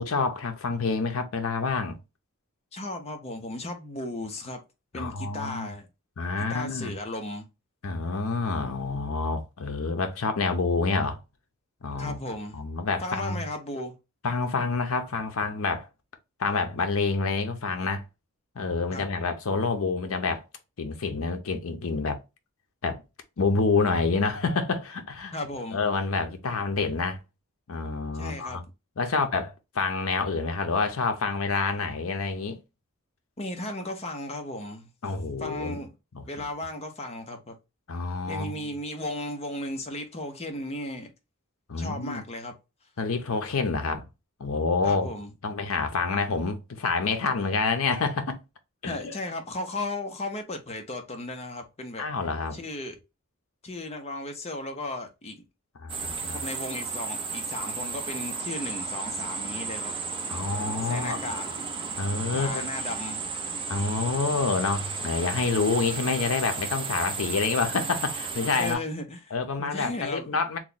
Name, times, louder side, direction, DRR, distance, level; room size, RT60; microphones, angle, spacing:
voice 1, 0.0-2.0 4.9-5.7 6.2-6.9 7.8-11.2 11.8-12.2 12.5-13.4 14.2-15.9 16.4-18.1 18.6-20.4 20.8-22.2 22.8-23.0 23.4-25.3 25.7-27.2 27.7-28.6 29.0-32.6 35.0-35.8 36.1-36.2 37.9-38.7 41.7-42.2 43.0-44.0 44.4-45.1 45.4-48.4 48.8-49.1 52.0-52.6 55.8-56.4 60.3-61.2 62.0-62.7 63.7-68.8 69.3-70.6, left 4 dB, 75° left, 0.6 m, -28 dB
voice 2, 2.7-4.6 4.9-5.9 6.5-7.5 12.0-12.6 13.0-14.0 18.9-19.1 25.3-25.8 28.1-28.6 33.4-34.9 35.4-35.9 36.3-37.6 38.3-41.1 41.8-42.5 44.8-45.3 48.8-52.1 52.5-53.0 53.6-55.4 56.3-59.9 60.8-61.5 62.3-63.2 68.6-69.3 69.6-70.4, left 1 dB, 30° left, 0.6 m, -35 dB
sound 1, 55.9-68.8, right 4 dB, 25° right, 0.5 m, -34 dB
3.0 x 2.2 x 3.8 m
head